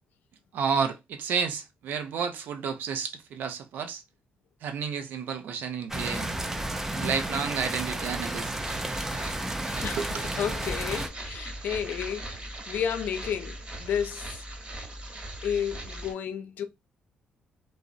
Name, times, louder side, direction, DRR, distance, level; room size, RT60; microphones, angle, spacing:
voice 1, 0.5-4.0 4.6-6.3 6.9-8.5 10.0-10.1, right 6 dB, 75° right, 0.5 m, -31 dB
sound 1, 5.9-11.1, right 1 dB, 10° right, 0.4 m, -32 dB
sound 2, 8.5-16.1, right 1 dB, 35° right, 1.2 m, -39 dB
voice 2, 9.8-14.4 15.4-16.6, left 8 dB, 70° left, 0.4 m, -32 dB
2.6 x 2.0 x 2.4 m
supercardioid pair, 70°, 3 cm